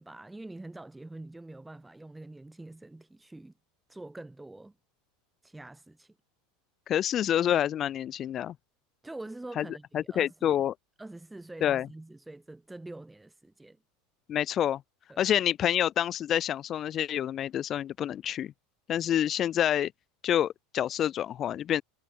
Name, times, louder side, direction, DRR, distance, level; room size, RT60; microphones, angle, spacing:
voice 1, 0.0-3.5 3.9-4.7 5.4-6.1 9.0-10.7 11.0-13.8 15.1-15.3, right 2 dB, 10° right, 5.6 m, -45 dB
voice 2, 6.9-8.5 9.6-9.7 9.9-10.7 11.6-11.9 14.3-14.8 15.2-18.5 18.9-19.9 20.2-21.8, left 10 dB, 40° left, 0.4 m, -27 dB
hypercardioid pair, 85°, 0 cm